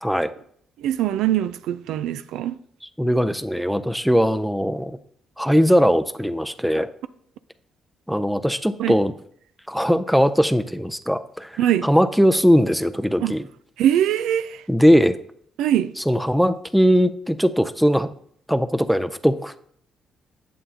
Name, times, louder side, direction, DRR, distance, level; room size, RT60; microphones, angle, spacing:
voice 1, 0.0-0.3 3.0-5.0 5.4-6.9 8.1-9.1 9.7-13.4 14.7-15.2 16.1-18.1 18.5-19.6, equal, ahead, 0.5 m, -20 dB
voice 2, 0.8-2.5 8.8-9.0 11.6-11.9 13.2-13.4 13.8-14.6 15.6-15.9, right 11 dB, 90° right, 0.3 m, -22 dB
8.9 x 7.4 x 2.8 m
cardioid pair, 90°, 0 cm